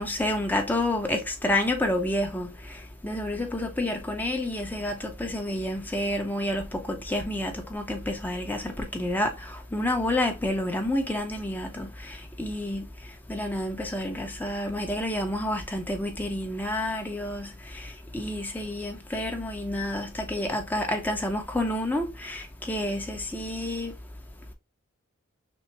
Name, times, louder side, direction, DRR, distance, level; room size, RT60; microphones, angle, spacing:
voice 1, 0.0-2.5 3.0-12.9 13.3-17.5 17.7-17.9 18.1-23.9, left 1 dB, 10° left, 0.7 m, -29 dB
6.1 x 2.0 x 3.2 m
head